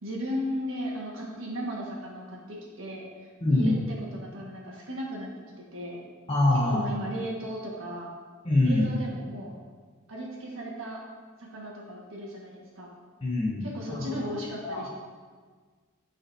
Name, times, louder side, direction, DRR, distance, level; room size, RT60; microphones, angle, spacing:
voice 1, 0.0-3.1 3.5-5.3 5.7-6.0 6.7-8.1 8.6-9.5 10.1-11.0 11.4-12.9 13.6-14.9, equal, 75° right, -3 dB, 1.5 m, -36 dB
voice 2, 3.4-3.8 6.3-6.8 8.4-8.9 13.2-14.2 14.6-14.9, left 2 dB, 30° left, -5 dB, 0.8 m, -24 dB
12.5 x 4.2 x 2.7 m, 1.5 s
head